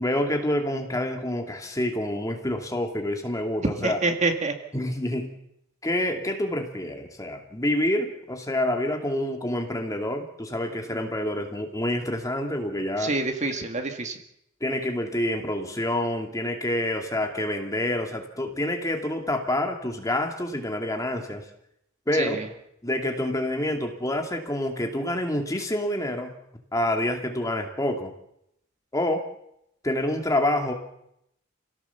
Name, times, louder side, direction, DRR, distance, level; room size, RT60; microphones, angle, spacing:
voice 1, 0.0-4.0 4.7-5.3 5.8-13.1 14.6-21.4 22.1-22.4 22.8-26.3 26.7-28.1 28.9-29.2 29.8-30.7, left 1 dB, 15° left, 3 dB, 2.5 m, -27 dB
voice 2, 3.8-4.5 13.0-14.2 22.2-22.5, right 3 dB, 35° right, 5 dB, 1.9 m, -27 dB
28.0 x 17.0 x 7.1 m, 0.80 s
head